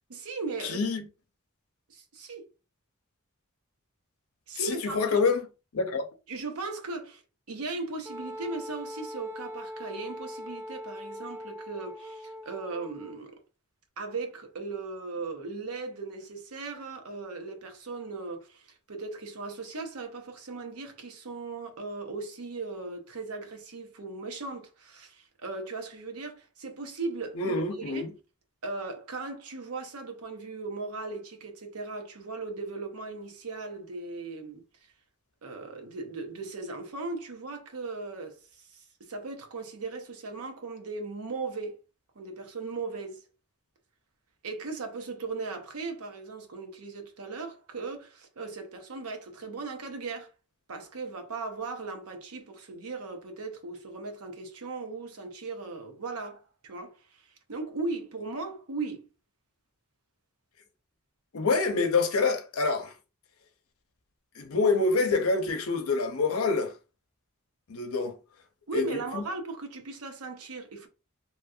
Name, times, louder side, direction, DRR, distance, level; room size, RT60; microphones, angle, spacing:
voice 1, 0.1-0.8 1.9-2.4 4.5-5.2 6.3-7.2 7.5-13.4 14.0-28.1 28.6-34.6 35.4-38.4 38.7-41.8 42.2-43.2 44.4-50.3 50.7-57.2 57.5-59.1 68.7-70.9, right 3 dB, 90° right, 0.8 m, -38 dB
voice 2, 0.6-1.0 4.6-5.5 5.7-6.0 27.4-28.1 61.3-62.9 64.4-66.7 67.7-68.1 68.7-69.2, left 4 dB, 75° left, 0.7 m, -26 dB
Wind instrument woodwind instrument, 8.1-13.2, equal, 15° right, 0.4 m, -41 dB
2.9 x 2.4 x 2.7 m
head